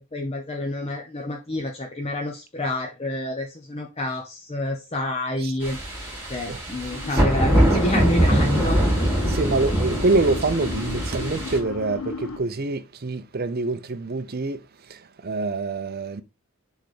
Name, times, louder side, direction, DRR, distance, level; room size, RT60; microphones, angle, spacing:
voice 1, 0.1-5.8 6.3-8.8, left 1 dB, 30° left, 0.8 m, -28 dB
sound 1, 5.6-11.6, right 1 dB, 10° right, 2.5 m, -23 dB
voice 2, 6.4-7.2 7.5-7.7 9.3-16.2, right 3 dB, 45° right, 0.7 m, -26 dB
sound 2, 6.9-12.4, left 4 dB, 80° left, 0.8 m, -35 dB
6.4 x 3.5 x 4.9 m
head